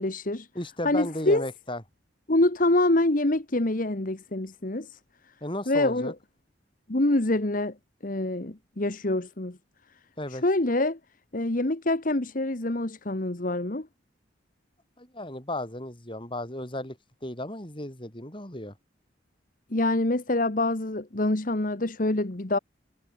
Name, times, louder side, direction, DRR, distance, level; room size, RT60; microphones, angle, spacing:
voice 1, 0.0-0.5 0.8-1.5 2.3-5.0 5.7-6.1 6.9-7.7 8.0-9.6 10.3-11.0 11.3-13.9 19.7-22.6, left 2 dB, 45° left, 1.4 m, -25 dB
voice 2, 0.5-1.8 5.4-6.1 10.2-10.4 15.0-17.0 17.2-18.7, left 1 dB, 25° left, 5.1 m, -34 dB
head